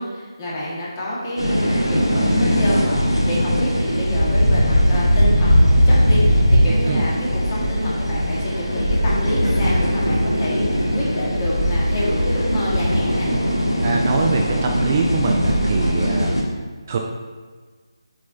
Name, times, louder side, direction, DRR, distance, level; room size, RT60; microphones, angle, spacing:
voice 1, 0.0-13.3 16.0-16.3, left 1 dB, 25° left, -6 dB, 1.8 m, -27 dB
sound 1, 1.4-16.4, equal, 85° left, 1.5 m, -19 dB
voice 2, 13.8-16.3 16.9-17.0, right 4 dB, 30° right, 2 dB, 0.4 m, -23 dB
7.6 x 4.6 x 2.8 m, 1.5 s
figure-of-eight pair, 155°, 3 cm